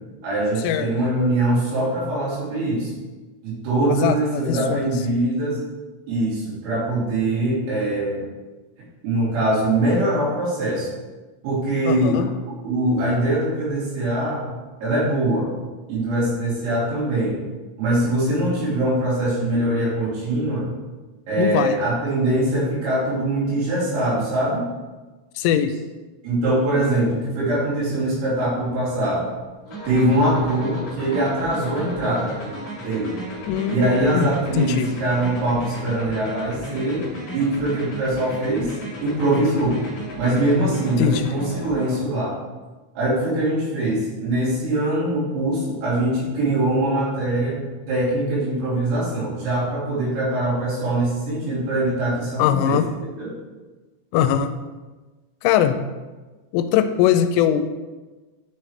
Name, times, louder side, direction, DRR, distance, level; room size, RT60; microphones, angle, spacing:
voice 1, 0.2-2.9 3.4-5.6 6.1-8.2 9.0-10.9 11.4-12.2 12.6-14.5 14.8-15.5 15.9-17.4 17.8-20.7 21.3-24.6 26.2-29.3 29.9-32.3 32.8-33.1 33.7-37.1 37.3-38.7 39.0-39.8 40.2-42.3 43.0-47.6 47.9-52.8 53.2-53.3, right 1 dB, 85° right, -8 dB, 5.6 m, -22 dB
voice 2, 3.9-4.9 11.8-12.3 21.4-21.8 25.4-25.7 33.5-34.9 41.0-41.3 52.4-52.8 54.1-54.5 55.4-55.8 56.5-57.7, left 9 dB, 85° left, 8 dB, 3.1 m, -21 dB
Organ, 27.5-27.7 28.1-28.2 29.0-35.4, right 4 dB, 65° right, 1.5 m, -43 dB
sound 1, 29.7-42.0, equal, 40° left, 2.6 m, -35 dB
12.5 x 4.9 x 3.2 m, 1.2 s
omnidirectional pair, 5.8 m